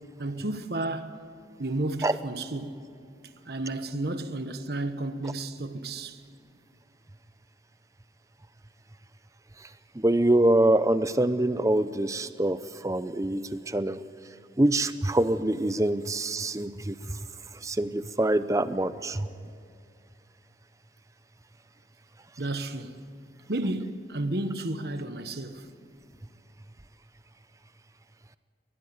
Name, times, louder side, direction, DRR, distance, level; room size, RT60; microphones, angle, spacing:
voice 1, 0.2-1.2 1.6-2.8 3.4-6.2 22.4-23.0 23.5-25.7, right 2 dB, 60° right, 1.3 m, -32 dB
voice 2, 10.0-14.0 14.6-17.0 17.6-19.3, right 1 dB, 15° right, 0.6 m, -25 dB
23.5 x 20.0 x 9.4 m
head